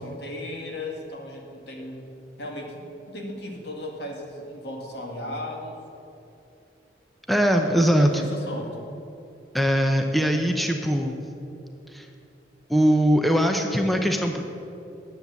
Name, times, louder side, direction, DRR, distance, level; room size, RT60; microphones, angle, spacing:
voice 1, 0.0-2.1 2.4-5.8 7.6-8.9, left 1 dB, 65° left, 1 dB, 1.9 m, -36 dB
voice 2, 7.3-8.1 9.5-11.2 11.9-12.1 12.7-14.4, equal, ahead, 4 dB, 0.6 m, -21 dB
10.5 x 7.2 x 8.2 m, 2.7 s
head